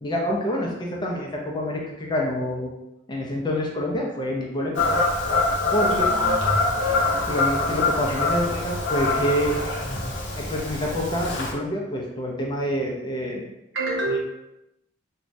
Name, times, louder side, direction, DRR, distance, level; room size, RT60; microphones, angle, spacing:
voice 1, 0.0-2.7 3.1-5.0 5.7-6.1 7.3-9.5 10.4-13.5 14.1-14.2, equal, 25° left, -2 dB, 0.5 m, -27 dB
Fowl / Bird vocalization bird call bird song, 4.7-11.5, left 2 dB, 85° left, 0.6 m, -24 dB
voice 2, 5.9-6.9 13.7-14.2, right 2 dB, 80° right, -5 dB, 1.0 m, -29 dB
3.0 x 2.3 x 2.6 m, 0.88 s
head